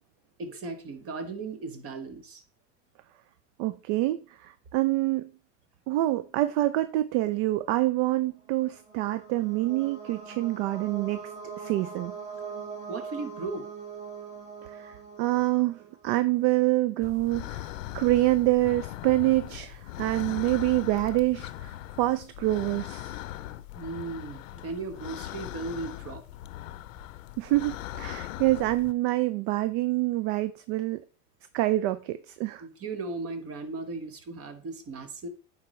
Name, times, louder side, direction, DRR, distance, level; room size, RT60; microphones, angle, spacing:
voice 1, 0.4-2.4 12.9-13.7 23.7-26.2 32.6-35.3, right 3 dB, 35° right, 1.2 m, -36 dB
voice 2, 3.6-5.3 5.9-11.2 11.6-12.1 14.7-17.7 17.9-23.2 27.4-31.0 31.5-32.6, right 17 dB, 55° right, 0.5 m, -26 dB
sound 1, 8.4-16.2, right 5 dB, 15° right, 1.4 m, -42 dB
sound 2, 17.0-28.9, left 14 dB, 85° left, 0.6 m, -40 dB
9.5 x 4.0 x 3.1 m
supercardioid pair, 110°, 38 cm